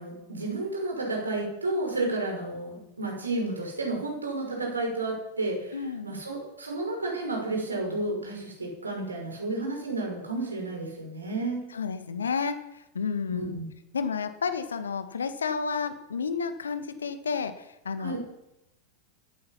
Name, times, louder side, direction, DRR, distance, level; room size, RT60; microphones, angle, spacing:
voice 1, 0.0-11.6 13.3-13.6 18.0-18.2, right 2 dB, 75° right, 1 dB, 5.9 m, -31 dB
voice 2, 5.7-6.1 11.7-13.5 13.9-18.2, left 5 dB, 70° left, 9 dB, 1.9 m, -31 dB
17.0 x 14.0 x 5.9 m, 0.88 s
figure-of-eight pair, 90°, 0 cm